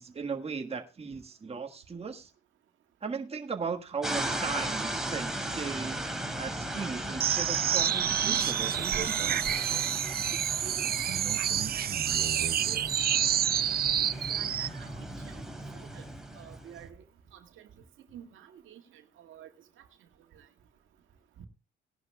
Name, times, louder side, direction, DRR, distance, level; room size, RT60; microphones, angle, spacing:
voice 1, 0.0-2.3 3.0-6.0 6.4-9.6, right 5 dB, 30° right, 1.5 m, -37 dB
sound 1, 4.0-16.9, right 1 dB, ahead, 3.0 m, -37 dB
sound 2, 7.2-14.8, right 9 dB, 50° right, 0.6 m, -28 dB
voice 2, 10.6-11.0 11.4-13.7 14.3-14.9 15.2-15.4 15.7-16.1 16.3-17.0 17.3-17.7 18.1-19.5 19.8-19.9 20.3-20.5, right 9 dB, 80° right, 1.9 m, -49 dB
18.5 x 11.0 x 2.3 m
cardioid pair, 90°, 20 cm